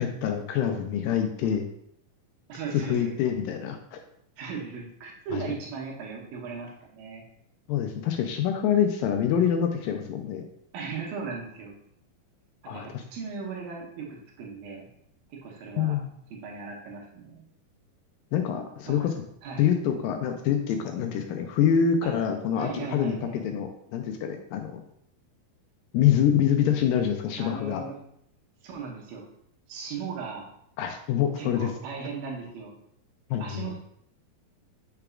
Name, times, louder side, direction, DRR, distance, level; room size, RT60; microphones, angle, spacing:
voice 1, 0.0-1.7 2.9-4.0 5.3-5.4 7.7-10.4 12.7-13.0 15.8-16.1 18.3-19.1 19.6-24.8 25.9-27.8 30.8-31.7 33.3-33.7, left 9 dB, 80° left, 5 dB, 2.1 m, -26 dB
voice 2, 2.5-3.1 4.4-7.2 10.7-11.7 12.6-14.9 15.3-16.0 16.3-17.4 18.9-19.0 19.4-19.7 22.0-22.1 22.6-23.4 27.4-28.0 28.6-29.3 29.7-30.4 31.4-32.7 33.4-33.7, right 5 dB, 80° right, -1 dB, 2.7 m, -37 dB
6.7 x 5.9 x 2.4 m, 0.71 s
omnidirectional pair, 4.3 m